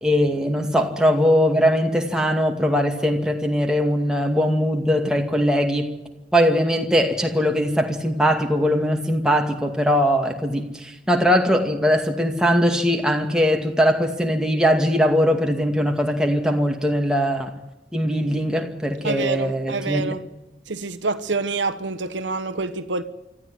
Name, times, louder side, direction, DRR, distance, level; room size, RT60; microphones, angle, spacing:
voice 1, 0.0-5.9 6.3-17.5 17.9-20.1, equal, 5° right, 2.3 m, -20 dB
voice 2, 19.0-20.2 20.7-23.0, right 4 dB, 90° right, 1.2 m, -26 dB
25.5 x 14.0 x 9.8 m
head